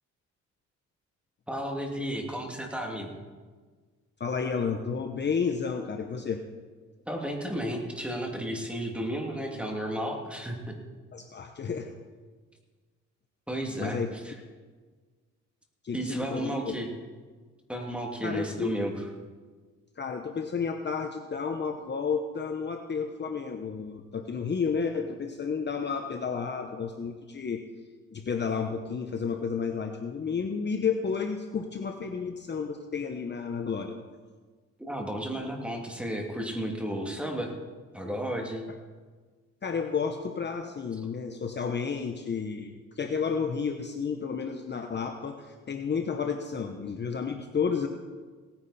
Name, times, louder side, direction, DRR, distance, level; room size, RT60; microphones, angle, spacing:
voice 1, 1.5-3.1 7.1-10.7 13.5-14.0 14.2-14.3 15.9-16.9 17.7-19.1 34.8-37.5 37.9-38.7, right 1 dB, 5° right, 1 dB, 2.6 m, -33 dB
voice 2, 4.2-6.4 11.1-11.9 13.8-14.1 15.8-16.7 18.2-18.8 20.0-27.6 28.1-34.0 39.6-47.9, left 6 dB, 35° left, 5 dB, 1.0 m, -31 dB
18.0 x 9.8 x 4.2 m, 1.4 s
cardioid pair, 90°, 30 cm